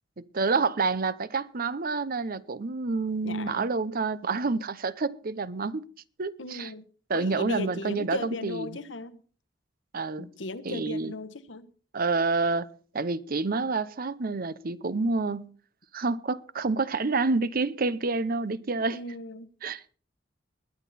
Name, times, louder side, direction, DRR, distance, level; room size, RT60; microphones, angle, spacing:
voice 1, 0.2-5.8 6.2-6.7 7.1-8.8 9.9-10.3 10.6-11.1 11.9-12.7 12.9-15.5 15.9-19.0 19.6-19.9, right 3 dB, 50° right, 0.8 m, -28 dB
voice 2, 3.2-3.7 6.4-6.8 7.1-9.2 10.2-11.7 18.9-19.5, left 2 dB, 75° left, 1.2 m, -37 dB
21.5 x 8.9 x 4.2 m
head